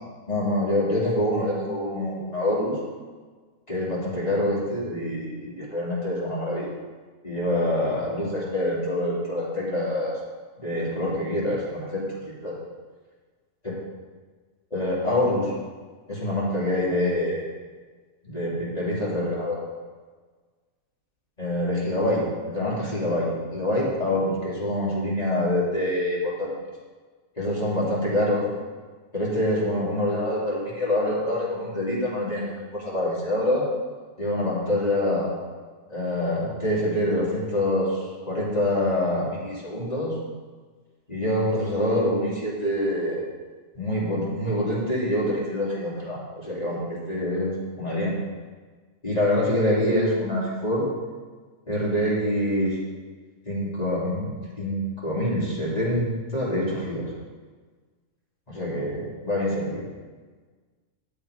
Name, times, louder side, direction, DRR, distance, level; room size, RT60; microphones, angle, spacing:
voice 1, 0.3-2.7 3.7-6.7 7.2-10.2 10.6-12.6 14.7-15.5 16.1-17.4 18.2-19.6 21.4-26.5 27.4-28.4 29.1-33.6 34.2-35.3 35.9-40.1 41.1-43.2 43.7-48.2 49.0-50.8 51.7-52.8 53.4-57.1 58.5-59.8, left 1 dB, 30° left, -7 dB, 2.8 m, -26 dB
10.5 x 7.0 x 4.8 m, 1.4 s
omnidirectional pair, 1.4 m